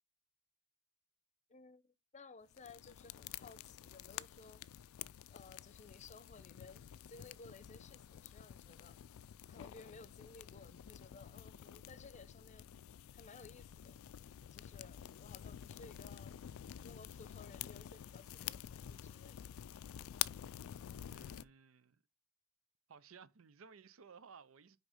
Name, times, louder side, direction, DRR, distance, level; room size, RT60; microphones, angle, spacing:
voice 1, 1.5-4.6 5.3-6.8 7.1-9.0 9.5-12.7 13.1-16.4 16.8-19.5, left 3 dB, 35° left, 0.7 m, -58 dB
sound 1, 2.5-21.4, left 11 dB, 85° left, 0.3 m, -49 dB
voice 2, 20.9-22.0 22.9-24.8, right 5 dB, 75° right, 0.6 m, -58 dB
6.4 x 5.1 x 4.9 m
head